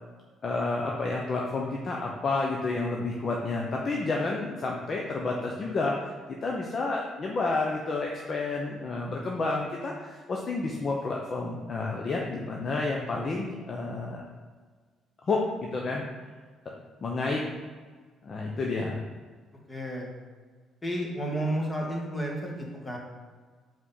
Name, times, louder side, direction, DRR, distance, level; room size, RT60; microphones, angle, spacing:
voice 1, 0.4-14.2 15.3-16.0 17.0-17.4 18.2-19.0, left 3 dB, 40° left, -1 dB, 0.7 m, -30 dB
voice 2, 19.7-20.1 20.8-23.0, right 1 dB, 20° left, -2 dB, 1.5 m, -31 dB
4.8 x 3.7 x 5.5 m, 1.5 s
cardioid pair, 105°, 0 cm